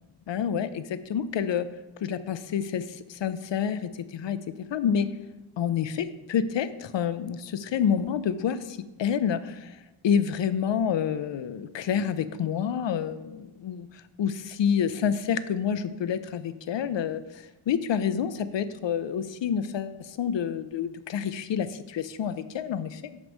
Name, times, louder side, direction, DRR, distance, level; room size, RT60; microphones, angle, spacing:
voice 1, 0.3-1.7 2.0-4.4 4.7-5.1 5.6-9.8 10.0-23.2, left 8 dB, 65° left, 13 dB, 0.5 m, -28 dB
7.9 x 3.1 x 5.3 m, 1.1 s
wide cardioid pair, 90°, 48 cm